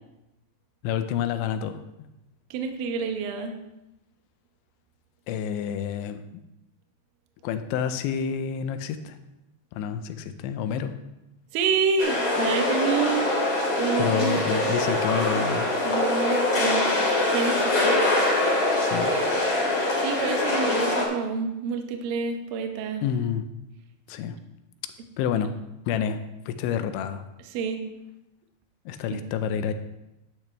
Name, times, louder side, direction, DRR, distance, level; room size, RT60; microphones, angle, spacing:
voice 1, 0.8-1.8 5.3-6.2 7.4-9.2 9.7-10.9 13.9-15.7 18.8-19.1 23.0-23.4 24.1-24.4 25.2-25.5 25.9-26.2 26.5-27.2 28.9-29.7, left 8 dB, 80° left, 9 dB, 2.8 m, -28 dB
voice 2, 2.5-3.6 11.5-13.3 13.8-14.4 15.8-16.8 17.3-18.1 20.0-23.0 27.5-27.8 29.1-29.2, right 5 dB, 75° right, 5 dB, 2.1 m, -28 dB
sound 1, 12.0-21.0, left 2 dB, 30° left, 2.9 m, -24 dB
12.0 x 10.5 x 3.3 m, 0.93 s
omnidirectional pair, 5.6 m